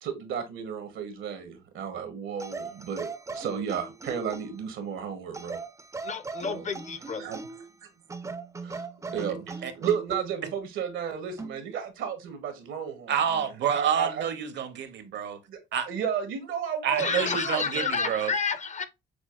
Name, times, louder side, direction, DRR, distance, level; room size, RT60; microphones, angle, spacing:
voice 1, 0.0-5.6 6.4-6.6 7.2-7.9 8.6-8.8 9.1-14.3 15.5-15.6 15.9-18.1, right 8 dB, 80° right, 0.9 m, -33 dB
sound 1, 2.4-4.6 5.3-7.7 8.1-10.3 11.4-11.6, right 4 dB, 15° right, 0.4 m, -39 dB
voice 2, 6.0-7.3 17.0-18.8, left 5 dB, 35° left, 0.5 m, -30 dB
voice 3, 13.1-15.4 15.7-15.9 16.8-18.3, right 8 dB, 65° right, 0.7 m, -28 dB
6.0 x 2.3 x 2.3 m
cardioid pair, 90°, 20 cm